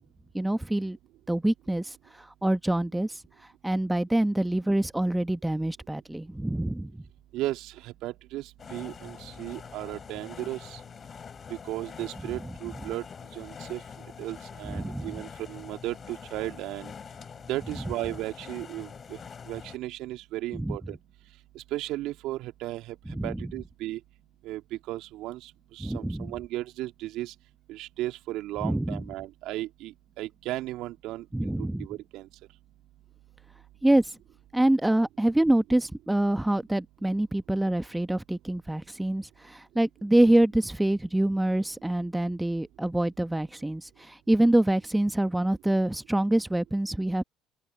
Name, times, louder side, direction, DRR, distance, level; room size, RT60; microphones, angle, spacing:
voice 1, 0.3-1.0 1.3-3.2 3.6-7.0 14.6-15.2 20.5-20.8 23.1-23.4 25.8-26.3 28.6-29.0 31.3-31.9 33.8-34.2 34.5-47.2, right 1 dB, 10° right, 1.1 m, -26 dB
voice 2, 7.3-10.8 11.5-13.1 13.3-13.8 14.2-16.9 17.5-19.2 19.5-21.0 21.6-23.0 23.2-24.0 24.4-27.3 27.7-31.5 31.8-32.3, right 16 dB, 65° right, 2.2 m, -35 dB
sound 1, 8.6-19.8, left 6 dB, 35° left, 5.6 m, -44 dB
open air
hypercardioid pair, 70°, 0 cm